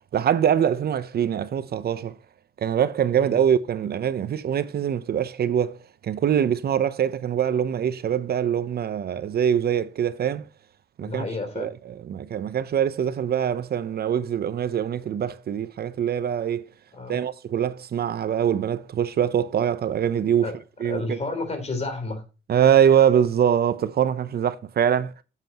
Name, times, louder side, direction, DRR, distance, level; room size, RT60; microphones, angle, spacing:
voice 1, 0.1-2.2 2.6-5.8 6.0-10.5 11.0-11.2 11.6-11.7 12.1-16.6 17.1-20.5 20.8-21.2 22.5-25.1, right 9 dB, 55° right, 0.7 m, -23 dB
voice 2, 11.0-11.7 16.9-17.2 20.4-20.5 20.9-22.2, left 3 dB, 35° left, 3.5 m, -31 dB
9.1 x 7.5 x 2.9 m
cardioid pair, 90°, 20 cm